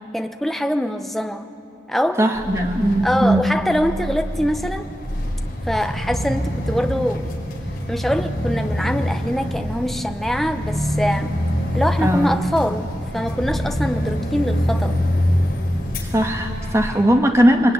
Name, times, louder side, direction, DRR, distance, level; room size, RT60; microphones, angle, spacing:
voice 1, 0.1-1.5 1.9-2.3 3.0-4.9 5.6-7.3 7.9-11.3 11.7-12.9 13.1-14.9, equal, ahead, 6 dB, 0.9 m, -23 dB
voice 2, 2.2-3.5 12.0-12.3 16.0-17.7, equal, 15° right, 3 dB, 1.8 m, -18 dB
sound 1, 2.3-17.0, equal, 55° left, 5.0 m, -25 dB
27.5 x 22.0 x 9.6 m, 2.9 s
head